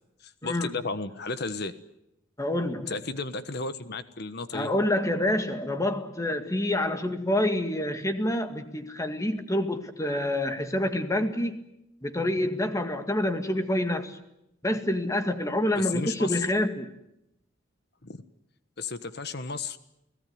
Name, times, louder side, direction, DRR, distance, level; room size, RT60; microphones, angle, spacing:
voice 1, 0.2-1.7 2.9-4.7 15.7-16.5 18.0-18.2 18.8-19.8, left 4 dB, 55° left, 12 dB, 1.3 m, -33 dB
voice 2, 2.4-2.9 4.5-11.6 12.0-14.2 14.6-16.9, left 1 dB, 15° left, 7 dB, 2.0 m, -27 dB
30.0 x 17.5 x 9.4 m, 0.86 s
head